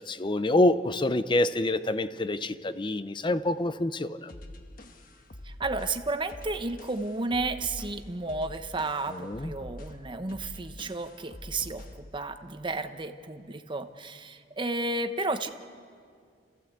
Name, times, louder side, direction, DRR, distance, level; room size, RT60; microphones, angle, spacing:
voice 1, 0.0-4.3 9.1-9.5, left 1 dB, 30° left, 13 dB, 0.6 m, -27 dB
sound 1, 4.3-12.1, left 1 dB, 55° left, 1.4 m, -45 dB
voice 2, 5.4-15.5, right 2 dB, 30° right, 8 dB, 1.0 m, -32 dB
29.5 x 15.0 x 8.1 m, 2.2 s
head